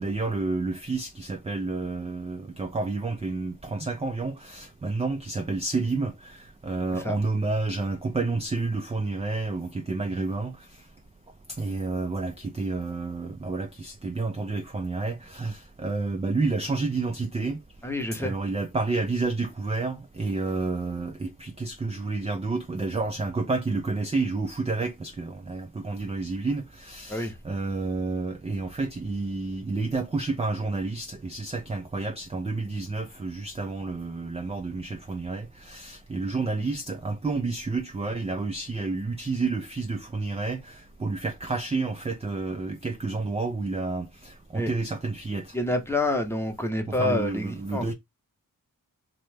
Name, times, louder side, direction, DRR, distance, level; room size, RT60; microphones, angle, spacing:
voice 1, 0.0-10.5 11.6-17.6 18.2-45.5 46.9-47.9, right 3 dB, 20° right, 0.3 m, -30 dB
voice 2, 17.8-18.3 27.1-27.4 44.5-44.7 45.5-47.9, left 1 dB, 5° left, 0.8 m, -28 dB
3.0 x 2.1 x 3.2 m
wide cardioid pair, 75°, 34 cm